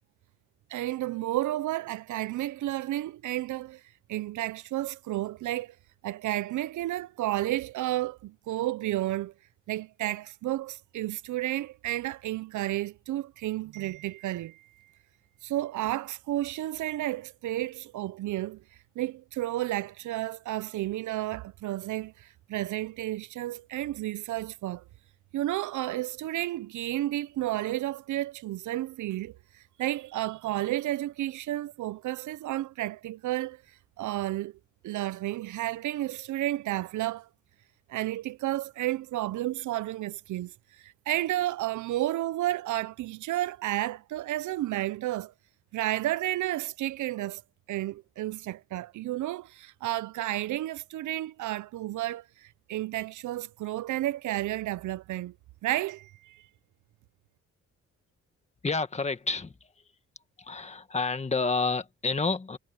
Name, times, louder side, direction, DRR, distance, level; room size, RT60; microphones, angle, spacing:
voice 1, 0.7-3.8 4.1-5.7 6.0-9.3 9.7-14.7 15.4-18.6 19.0-24.8 25.3-33.6 34.0-34.6 34.8-37.3 37.9-45.3 45.7-47.4 47.7-55.3 55.6-56.4, right 15 dB, 85° right, 0.6 m, -32 dB
voice 2, 58.6-59.7 60.4-62.6, left 4 dB, 20° left, 1.7 m, -29 dB
cardioid pair, 130°, 29 cm